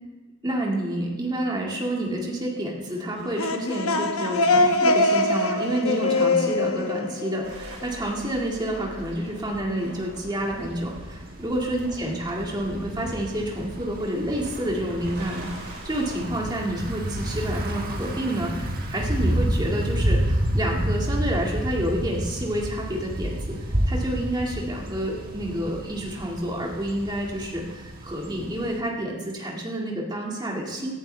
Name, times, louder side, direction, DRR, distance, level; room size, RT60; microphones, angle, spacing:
voice 1, 0.4-23.6 23.8-30.9, right 1 dB, 20° right, -2 dB, 2.0 m, -29 dB
sound 1, 3.2-7.9, left 2 dB, 75° left, 1.0 m, -23 dB
sound 2, 7.4-16.2, right 1 dB, 60° right, 3.8 m, -43 dB
Thunder / Bicycle, 10.4-28.8, right 1 dB, 40° right, 1.3 m, -30 dB
17.5 x 11.5 x 3.4 m, 1.2 s
head